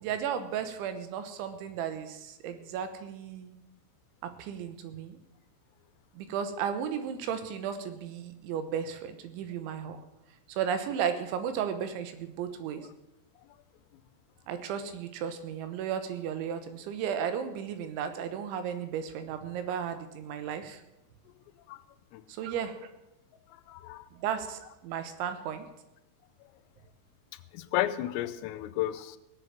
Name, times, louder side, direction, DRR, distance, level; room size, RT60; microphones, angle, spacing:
voice 1, 0.0-3.6 4.2-5.2 6.2-10.0 10.5-12.9 14.5-20.8 22.3-22.8 24.1-25.7, right 8 dB, 75° right, 9 dB, 3.2 m, -34 dB
voice 2, 23.5-24.1 27.5-29.2, left 14 dB, 90° left, 13 dB, 3.4 m, -33 dB
18.5 x 7.9 x 7.5 m, 0.91 s
omnidirectional pair, 5.9 m